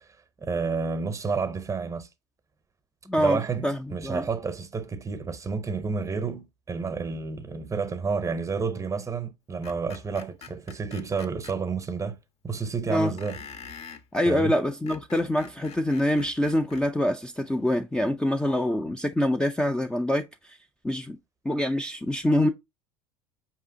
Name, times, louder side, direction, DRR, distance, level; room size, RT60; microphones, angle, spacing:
voice 1, 0.4-2.1 3.2-12.2 12.4-13.4 14.3-14.5, right 5 dB, 20° right, 0.7 m, -30 dB
voice 2, 3.1-4.2 12.9-13.1 14.1-20.6 20.8-21.2 21.4-22.5, left 1 dB, 5° left, 0.4 m, -25 dB
Screech, 9.6-11.6 13.2-14.1 14.7-16.9, left 6 dB, 40° left, 0.6 m, -44 dB
4.7 x 2.9 x 2.6 m
hypercardioid pair, 85°, 15 cm